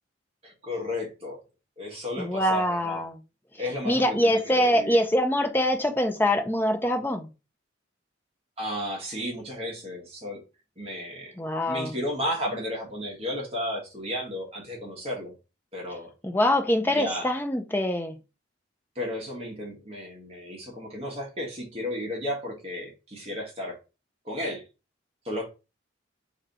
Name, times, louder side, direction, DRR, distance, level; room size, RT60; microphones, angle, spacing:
voice 1, 0.4-1.4 1.8-3.0 3.6-5.0 8.6-10.4 10.8-11.3 11.7-15.3 15.7-16.1 16.8-17.3 18.9-23.8 24.2-24.6 25.2-25.5, left 1 dB, 30° right, 1.1 m, -33 dB
voice 2, 2.2-3.2 3.9-7.3 11.4-11.9 16.2-18.1, left 1 dB, 10° left, 0.5 m, -24 dB
3.2 x 2.7 x 3.9 m
head